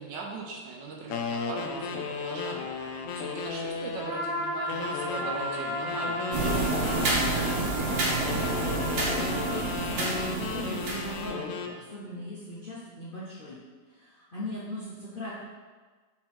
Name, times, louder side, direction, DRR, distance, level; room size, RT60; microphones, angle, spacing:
voice 1, 0.0-7.0, right 4 dB, 75° right, 0 dB, 1.5 m, -40 dB
sound 1, 1.1-4.2 4.7-7.6 8.2-11.8, left 5 dB, 75° left, 0.7 m, -35 dB
Trumpet, 3.9-10.4, equal, 5° left, 1.5 m, -35 dB
sound 2, 6.3-11.3, right 2 dB, 55° right, 1.5 m, -29 dB
voice 2, 7.6-13.6 13.9-15.3, left 1 dB, 45° left, -8 dB, 0.7 m, -40 dB
6.1 x 4.2 x 3.7 m, 1.4 s
omnidirectional pair, 2.0 m